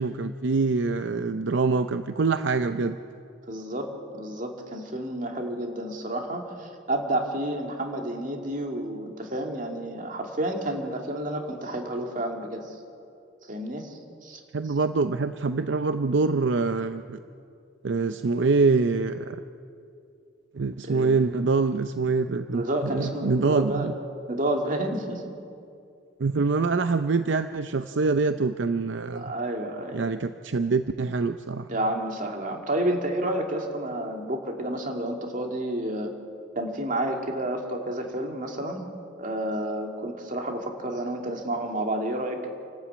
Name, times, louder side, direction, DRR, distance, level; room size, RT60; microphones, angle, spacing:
voice 1, 0.0-3.0 14.5-17.2 17.8-19.4 20.5-23.9 26.2-29.3 29.9-31.7, right 4 dB, 70° right, 10 dB, 0.6 m, -25 dB
voice 2, 3.5-3.9 4.1-12.7 13.5-14.4 20.8-21.1 22.5-23.9 24.3-25.2 29.1-30.0 31.7-36.1 36.6-38.8 39.2-42.5, right 1 dB, 45° right, 2 dB, 2.4 m, -30 dB
27.5 x 12.5 x 8.5 m, 2.5 s
head